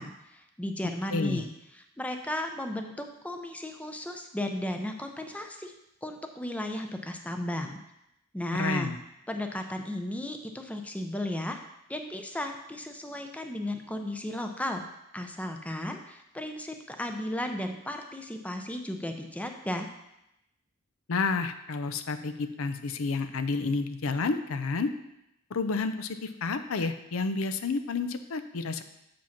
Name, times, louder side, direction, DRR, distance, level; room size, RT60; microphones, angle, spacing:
voice 1, 0.0-1.5 1.8-5.7 6.0-7.8 8.3-8.9 9.3-11.6 11.9-14.8 15.1-19.9, left 1 dB, 5° left, 5 dB, 0.5 m, -34 dB
voice 2, 1.1-1.4 8.5-9.0 21.1-24.9 25.5-28.8, left 4 dB, 65° left, 10 dB, 0.5 m, -30 dB
7.0 x 5.1 x 5.8 m, 0.84 s
head